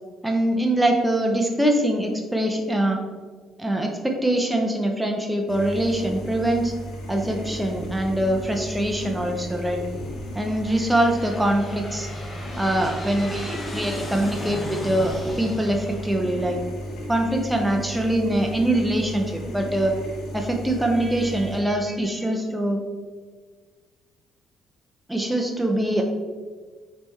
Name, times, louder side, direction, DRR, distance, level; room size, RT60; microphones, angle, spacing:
voice 1, 0.2-3.0 3.6-6.7 7.1-9.8 10.3-12.1 12.6-16.6 17.1-19.9 20.3-22.8 25.1-26.0, right 1 dB, 5° right, 1 dB, 0.4 m, -23 dB
Fridge Interior, 5.5-21.6, equal, 80° left, 1.0 m, -35 dB
Aircraft, 8.4-8.9 9.6-17.2, left 1 dB, 20° left, 0.9 m, -37 dB
5.2 x 3.1 x 3.1 m, 1.5 s
cardioid pair, 135°, 0 cm